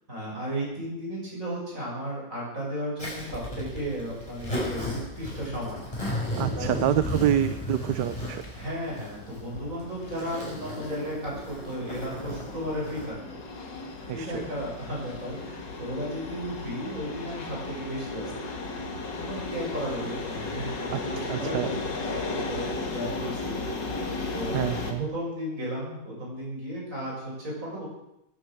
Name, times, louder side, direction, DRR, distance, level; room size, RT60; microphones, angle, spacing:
voice 1, 0.1-5.8 6.6-7.0 8.5-13.4 14.1-18.5 19.2-23.6 24.3-24.6 25.0-27.8, equal, 45° right, -4 dB, 7.9 m, -34 dB
Zipper (clothing), 3.0-13.1, left 1 dB, 15° left, 5.9 m, -35 dB
sound 1, 6.1-24.9, left 3 dB, 70° left, 2.6 m, -36 dB
voice 2, 6.3-8.4 14.1-14.4 20.9-21.7 24.5-25.1, right 11 dB, 70° right, 11 dB, 1.3 m, -27 dB
16.0 x 10.0 x 7.9 m, 0.83 s
omnidirectional pair, 2.0 m